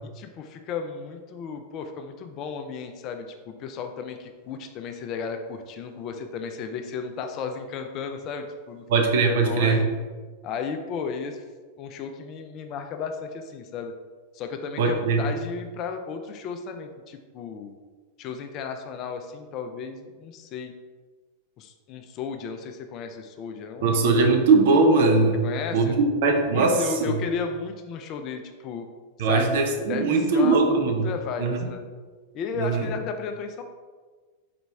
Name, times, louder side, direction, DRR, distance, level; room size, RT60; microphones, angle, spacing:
voice 1, 0.1-8.9 9.2-9.9 10.4-11.4 11.8-13.9 14.3-17.8 18.2-20.7 21.6-24.0 25.4-25.9 26.5-28.9 29.2-29.4 29.9-31.9 32.3-33.6, left 5 dB, 35° left, 6 dB, 0.4 m, -34 dB
voice 2, 8.9-9.8 14.8-15.3 23.8-25.5 25.7-27.1 29.2-31.1 31.4-31.6 32.6-32.9, right 3 dB, 55° right, 4 dB, 0.5 m, -20 dB
4.1 x 3.0 x 3.4 m, 1.4 s
figure-of-eight pair, 90°, 0 cm